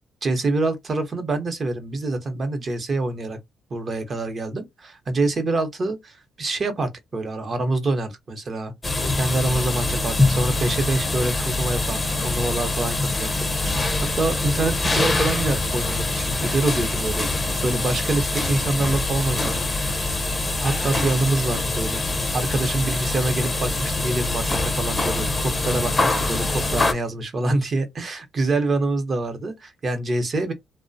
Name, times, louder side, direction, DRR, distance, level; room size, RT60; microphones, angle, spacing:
voice 1, 0.2-3.4 3.7-8.7 9.1-13.9 14.2-17.3 17.6-19.9 20.6-22.0 22.3-30.5, right 2 dB, 40° right, 0.7 m, -26 dB
sound 1, 8.8-26.9, left 2 dB, 20° left, 0.5 m, -24 dB
2.3 x 2.0 x 2.5 m
cardioid pair, 90°, 0 cm